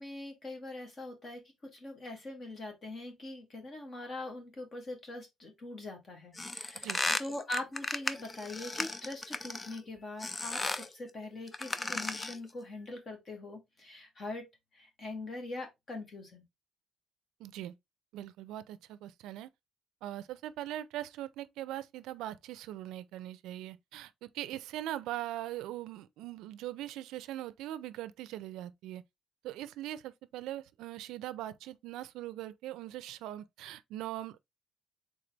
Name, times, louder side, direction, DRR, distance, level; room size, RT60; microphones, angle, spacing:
voice 1, 0.0-1.4 1.7-6.9 7.2-14.5 14.7-16.4, left 2 dB, 35° left, 1.6 m, -42 dB
sound 1, 6.4-9.8 10.2-10.9 11.5-12.5, left 2 dB, 20° left, 0.4 m, -35 dB
voice 2, 17.4-17.7 18.1-19.5 20.0-29.0 29.4-34.4, right 13 dB, 85° right, 0.4 m, -41 dB
3.9 x 3.6 x 3.3 m
cardioid pair, 140°, 0 cm